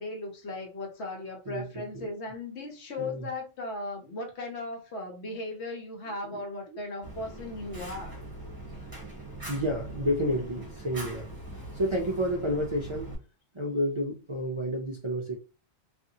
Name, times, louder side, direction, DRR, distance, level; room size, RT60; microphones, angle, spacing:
voice 1, 0.0-8.2 8.8-8.9, left 2 dB, 75° left, 1.1 m, -37 dB
voice 2, 1.5-2.2 3.0-3.3 6.2-6.8 9.5-11.3 11.7-13.1 13.5-15.4, equal, 45° right, 0.4 m, -30 dB
Fire, 7.0-13.2, right 1 dB, 20° right, 0.8 m, -42 dB
2.5 x 2.5 x 2.7 m
omnidirectional pair, 1.1 m